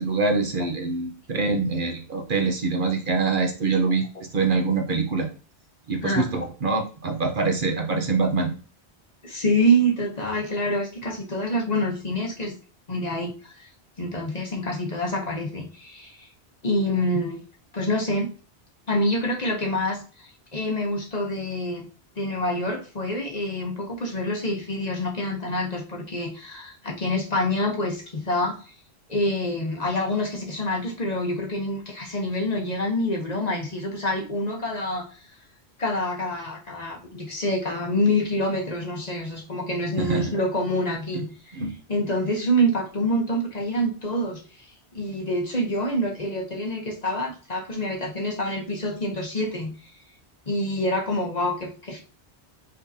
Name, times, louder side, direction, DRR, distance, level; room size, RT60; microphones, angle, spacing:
voice 1, 0.0-5.3 5.9-8.5 40.0-40.3 41.5-41.7, right 4 dB, 50° right, 3 dB, 1.0 m, -24 dB
voice 2, 9.2-12.5 12.9-13.5 14.0-16.3 16.6-17.4 17.7-18.3 18.9-21.9 22.2-28.6 29.1-35.1 35.8-41.6 41.9-44.4 44.9-49.9 50.5-52.0, equal, 40° left, 1 dB, 1.1 m, -26 dB
5.2 x 3.7 x 2.7 m, 0.36 s
omnidirectional pair, 1.1 m